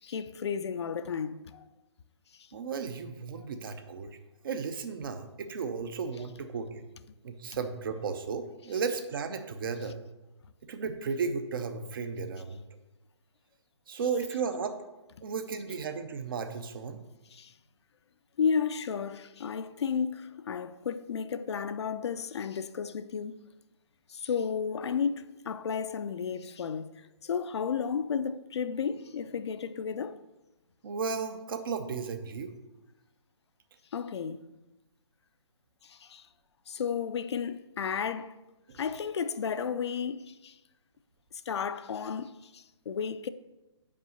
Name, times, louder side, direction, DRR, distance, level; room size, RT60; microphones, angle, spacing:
voice 1, 0.0-1.6 2.3-2.5 3.4-3.5 17.3-17.5 18.4-23.4 24.1-30.2 33.9-34.5 35.8-36.3 36.7-38.4 38.7-40.6 41.3-43.3, left 6 dB, 65° left, 0.5 m, -33 dB
voice 2, 2.5-4.2 4.4-6.8 7.2-10.0 10.6-12.6 13.9-14.8 15.2-17.0 30.8-32.5 38.7-38.8, right 5 dB, 50° right, 0.7 m, -34 dB
5.5 x 4.8 x 6.4 m
hypercardioid pair, 155°, 15 cm